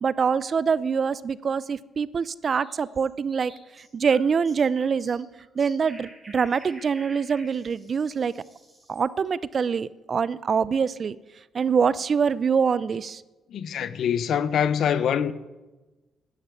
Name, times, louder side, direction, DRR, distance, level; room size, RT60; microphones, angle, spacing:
voice 1, 0.0-3.5 3.9-5.3 5.6-8.3 8.9-11.2 11.5-13.2, right 6 dB, 45° right, 0.6 m, -24 dB
sound 1, 2.5-9.1, right 1 dB, 20° right, 5.5 m, -50 dB
voice 2, 13.5-15.3, left 8 dB, 65° left, 0.9 m, -24 dB
11.5 x 10.0 x 9.1 m
cardioid pair, 90°, 0 cm